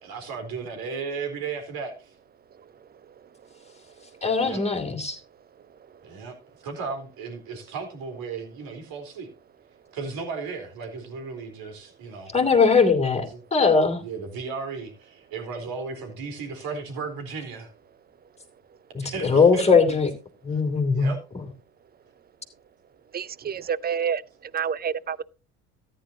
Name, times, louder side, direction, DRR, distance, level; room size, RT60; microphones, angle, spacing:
voice 1, 0.0-2.1 4.4-4.6 6.0-6.4 6.6-9.3 9.9-12.3 13.1-13.4 14.0-17.7 19.1-19.7 20.5-20.6 20.9-21.2 23.4-23.7, right 5 dB, 60° right, 4.1 m, -35 dB
voice 2, 4.2-5.2 12.3-14.0 18.9-20.1 20.4-21.1, left 5 dB, 15° left, 2.8 m, -20 dB
voice 3, 23.1-24.2 24.5-25.2, right 7 dB, 25° right, 0.5 m, -28 dB
14.0 x 10.5 x 2.8 m
hypercardioid pair, 70°, 40 cm